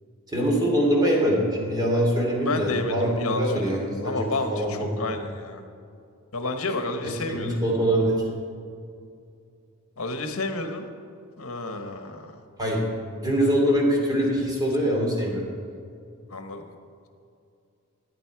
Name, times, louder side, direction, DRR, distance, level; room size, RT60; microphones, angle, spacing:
voice 1, 0.3-5.0 7.3-8.2 12.6-12.8 13.1-15.4, equal, 20° right, -2 dB, 2.6 m, -23 dB
voice 2, 2.4-5.6 6.3-7.6 10.0-10.9 11.4-12.4 16.3-16.7, left 2 dB, 70° left, 6 dB, 1.2 m, -30 dB
14.5 x 9.5 x 4.7 m, 2.4 s
head